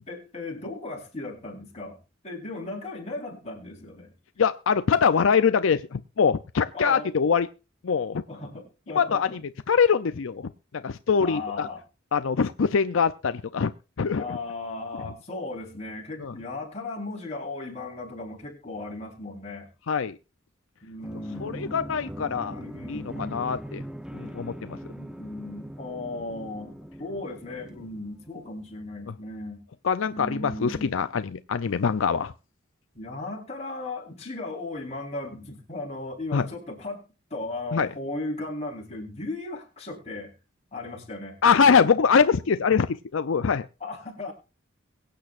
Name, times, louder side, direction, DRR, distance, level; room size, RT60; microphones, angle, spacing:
voice 1, 0.0-2.0 2.2-4.1 6.7-7.1 8.3-9.4 11.2-11.8 14.1-19.7 20.8-21.9 22.5-23.5 24.9-29.6 30.1-30.9 32.9-37.0 37.3-40.3 40.7-41.4 43.8-44.3, left 2 dB, 35° left, 4.3 m, -36 dB
voice 2, 4.4-7.5 7.8-8.2 8.9-9.4 9.7-11.7 12.1-13.7 14.0-14.4 16.2-16.3 19.9-20.2 21.4-22.6 22.9-23.8 24.1-24.8 29.8-32.3 36.3-36.5 37.7-37.9 41.4-43.7, left 6 dB, 75° left, 0.5 m, -23 dB
sound 1, 21.0-28.6, equal, 5° right, 0.7 m, -41 dB
23.0 x 8.6 x 2.5 m
head